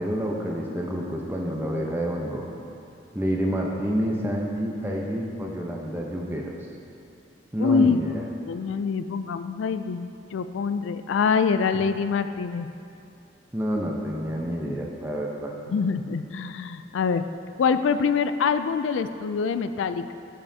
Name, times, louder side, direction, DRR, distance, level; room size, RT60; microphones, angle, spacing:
voice 1, 0.0-2.4 3.1-6.6 7.5-8.2 13.5-15.5, equal, 10° right, -1 dB, 0.7 m, -28 dB
voice 2, 7.6-8.0 8.5-12.7 15.7-17.2 17.6-20.1, left 5 dB, 75° left, 11 dB, 0.3 m, -25 dB
14.0 x 5.5 x 2.8 m, 2.6 s
head